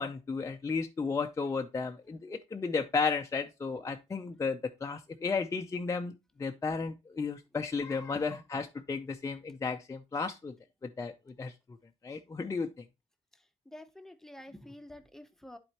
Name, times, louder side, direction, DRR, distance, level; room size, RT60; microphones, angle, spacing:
voice 1, 0.0-6.1 6.4-10.5 10.8-11.1 11.4-11.5 12.0-12.8, left 4 dB, 25° left, 0.5 m, -33 dB
voice 2, 13.7-15.6, left 1 dB, 5° left, 0.8 m, -48 dB
11.0 x 4.2 x 2.9 m
cardioid pair, 100°, 12 cm